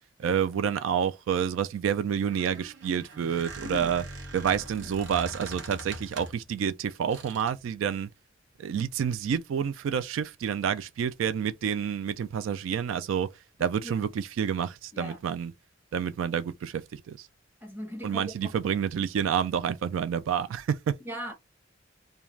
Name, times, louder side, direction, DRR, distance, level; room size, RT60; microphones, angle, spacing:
voice 1, 0.2-4.0 4.3-8.1 8.6-13.3 13.6-15.5 15.9-17.3 18.0-21.0, right 7 dB, 85° right, 0.3 m, -29 dB
Squeak, 2.2-6.5 7.1-7.6, right 2 dB, 65° right, 0.9 m, -42 dB
voice 2, 3.6-3.9 4.8-4.9 13.8-13.9 14.9-15.2 17.6-18.5 21.0-21.3, equal, 10° right, 1.0 m, -39 dB
2.4 x 2.2 x 3.1 m
head